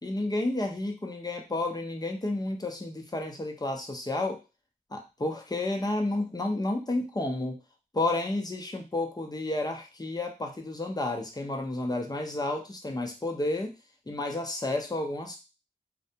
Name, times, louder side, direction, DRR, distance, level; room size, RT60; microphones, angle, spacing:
voice 1, 0.0-4.4 4.9-7.6 7.9-13.7 14.1-15.4, left 2 dB, 20° left, 3 dB, 0.7 m, -31 dB
2.4 x 2.2 x 2.8 m, 0.27 s
cardioid pair, 50°, 18 cm